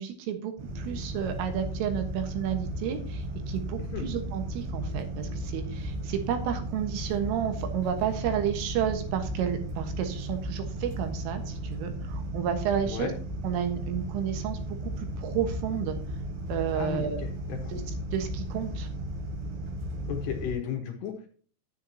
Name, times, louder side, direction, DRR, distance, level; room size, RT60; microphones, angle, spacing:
voice 1, 0.0-13.1 13.4-16.0 16.5-17.2 17.7-17.8 18.1-18.9, right 9 dB, 75° right, 6 dB, 3.8 m, -31 dB
sound 1, 0.6-20.5, right 1 dB, 55° right, 4.0 m, -35 dB
voice 2, 16.7-17.3 20.1-21.1, left 8 dB, 70° left, 4 dB, 2.9 m, -33 dB
10.0 x 9.9 x 2.8 m, 0.42 s
omnidirectional pair, 5.9 m